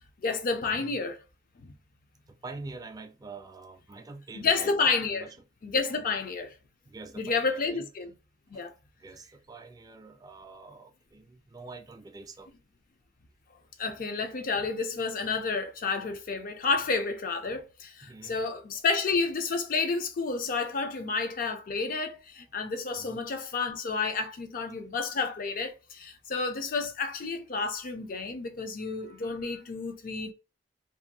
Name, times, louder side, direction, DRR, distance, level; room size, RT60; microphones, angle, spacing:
voice 1, 0.2-1.2 1.6-1.7 4.3-5.3 5.6-6.5 7.2-8.1 8.5-8.7 13.8-30.3, left 4 dB, 50° left, 0.5 m, -30 dB
voice 2, 2.4-5.4 6.0-6.2 6.9-7.9 8.5-8.7 9.0-12.5 18.0-18.4 23.0-23.2 25.1-25.2, right 3 dB, 20° right, 0.3 m, -46 dB
2.6 x 2.5 x 2.6 m
head